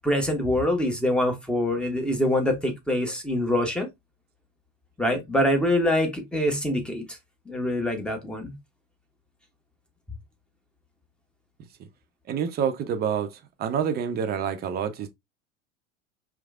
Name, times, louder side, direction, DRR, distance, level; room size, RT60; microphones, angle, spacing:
voice 1, 0.0-3.9 5.0-7.2 7.5-8.5, left 1 dB, ahead, 1.0 m, -25 dB
voice 2, 12.3-15.1, right 7 dB, 25° right, 0.6 m, -27 dB
4.8 x 3.2 x 2.4 m
figure-of-eight pair, 80°, 38 cm